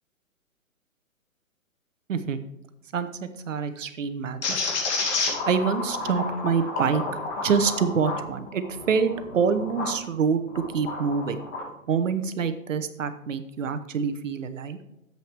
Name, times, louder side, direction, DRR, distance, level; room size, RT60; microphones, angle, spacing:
voice 1, 2.9-4.4 5.5-7.0 7.4-11.4 11.9-14.8, right 6 dB, 65° right, 10 dB, 1.0 m, -26 dB
sound 1, 4.4-10.0 10.5-11.7, left 3 dB, 55° left, 2.6 m, -30 dB
10.5 x 7.8 x 3.4 m, 0.91 s
hypercardioid pair, 135°, 42 cm